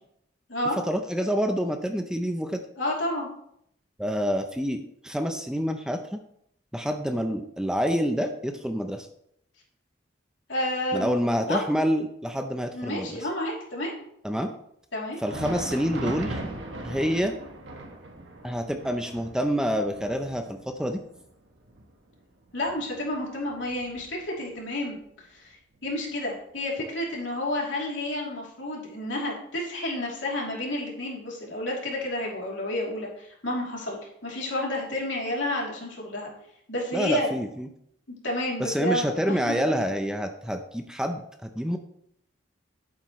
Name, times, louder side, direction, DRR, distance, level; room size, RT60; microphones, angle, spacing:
voice 1, 0.9-2.6 4.0-6.2 6.7-9.1 10.9-13.2 14.2-14.5 15.2-16.4 16.8-17.3 18.4-21.0 36.9-37.7 38.6-41.8, equal, 5° right, 6 dB, 0.5 m, -27 dB
voice 2, 2.8-3.3 10.5-11.1 11.5-11.6 12.7-14.0 14.9-15.2 22.5-25.0 25.3-25.6 25.8-36.3 36.7-37.3 38.2-39.6, left 1 dB, 80° left, -2 dB, 3.0 m, -30 dB
Thunder, 15.1-24.5 24.9-25.0 25.7-25.9 26.9-27.0, right 2 dB, 75° right, 1.4 m, -39 dB
11.0 x 8.5 x 3.1 m, 0.72 s
head